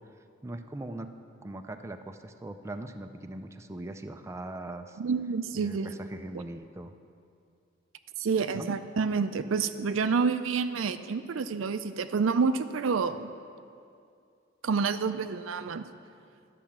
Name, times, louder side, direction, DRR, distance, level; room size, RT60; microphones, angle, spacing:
voice 1, 0.4-1.1 1.4-5.0 5.5-6.9 8.5-8.7, right 1 dB, 15° right, 7 dB, 0.4 m, -40 dB
voice 2, 5.0-5.9 6.3-6.4 8.2-13.3 14.6-15.9, right 5 dB, 85° right, 10 dB, 0.5 m, -28 dB
12.0 x 5.8 x 7.3 m, 2.4 s
head